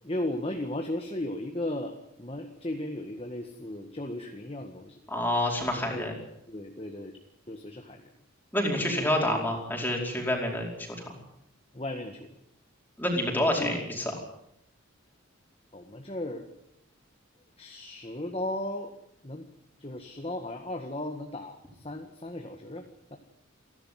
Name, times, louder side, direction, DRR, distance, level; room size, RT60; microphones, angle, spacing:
voice 1, 0.0-1.9 2.2-5.0 5.8-6.1 6.5-7.2 7.5-8.1 8.9-9.4 11.7-12.3 13.3-13.7 15.7-16.5 17.6-18.9 19.2-19.5 19.8-23.2, left 1 dB, 25° left, 3 dB, 1.6 m, -36 dB
voice 2, 5.1-6.1 8.5-10.7 11.0-11.1 13.0-14.0, left 1 dB, 10° left, 0 dB, 4.9 m, -28 dB
28.5 x 12.0 x 9.3 m, 0.76 s
head